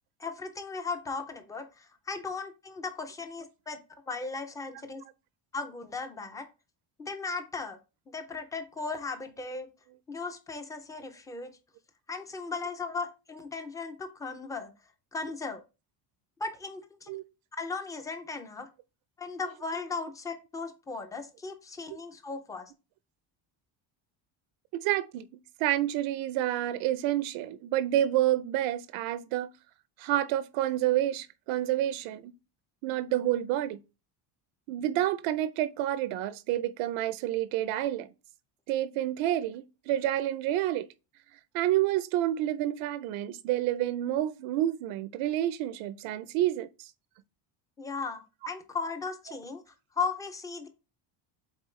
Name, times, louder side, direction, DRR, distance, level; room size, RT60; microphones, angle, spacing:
voice 1, 0.2-3.8 4.1-5.0 5.5-6.5 7.0-7.8 8.1-9.7 10.1-11.5 12.1-14.7 15.1-15.6 16.4-17.1 17.6-18.7 19.2-22.7 47.8-49.6 49.9-50.7, left 4 dB, 10° left, 0.3 m, -36 dB
voice 2, 24.7-25.3 25.6-29.5 30.0-32.3 32.8-33.8 34.7-38.1 38.7-40.9 41.5-46.9, right 13 dB, 75° right, 0.6 m, -29 dB
8.2 x 3.7 x 3.1 m
cardioid pair, 170°, 48 cm